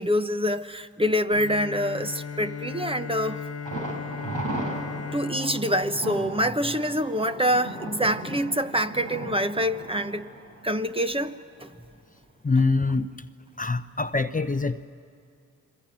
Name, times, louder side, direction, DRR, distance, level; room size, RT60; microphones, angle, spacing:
voice 1, 0.0-3.4 5.1-10.3 10.6-11.7, equal, 15° right, 1.1 m, -26 dB
Bowed string instrument, 1.3-7.2, left 6 dB, 45° left, 1.0 m, -37 dB
Thunder, 3.6-11.4 11.7-11.8 12.2-12.3, right 1 dB, 70° right, 5.7 m, -37 dB
voice 2, 12.4-13.1 13.6-14.9, left 3 dB, 25° left, 0.9 m, -24 dB
29.5 x 22.0 x 7.6 m
supercardioid pair, 40°, 35 cm